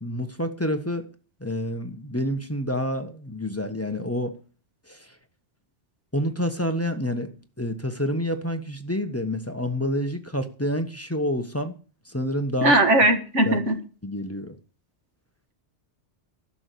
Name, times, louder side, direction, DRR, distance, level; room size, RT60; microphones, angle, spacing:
voice 1, 0.0-1.1 1.4-4.4 4.9-5.2 6.1-11.7 12.0-12.8 13.4-13.6 14.0-14.6, equal, 15° left, 1.2 m, -28 dB
voice 2, 12.6-13.8, right 1 dB, 85° right, 2.2 m, -19 dB
12.0 x 6.7 x 8.4 m
omnidirectional pair, 1.2 m